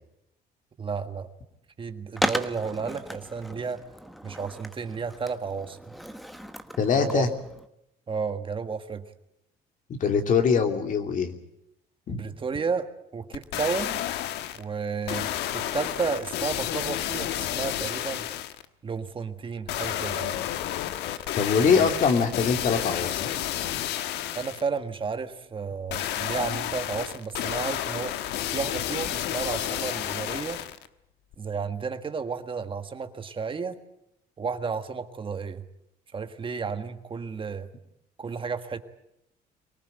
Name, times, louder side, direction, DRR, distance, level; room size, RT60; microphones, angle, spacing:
voice 1, 0.8-1.3 1.8-3.8 4.2-5.9 6.9-7.3 8.1-9.0 12.1-14.0 14.5-18.3 18.8-20.3 21.5-21.9 24.3-28.2 28.5-30.6 31.4-33.8 34.4-35.6 36.1-37.7 38.2-38.8, right 5 dB, 30° right, 8 dB, 1.6 m, -32 dB
Skateboard, 2.2-7.7, equal, ahead, 1.3 m, -35 dB
voice 2, 6.8-7.3 10.0-11.3 12.1-12.2 21.4-23.3, left 6 dB, 50° left, 5 dB, 2.9 m, -23 dB
sound 1, 13.3-14.6 15.1-18.7 19.7-24.7 25.9-30.9 31.3-31.4, left 12 dB, 85° left, 1.2 m, -31 dB
24.0 x 18.5 x 9.0 m, 0.82 s
cardioid pair, 110°, 17 cm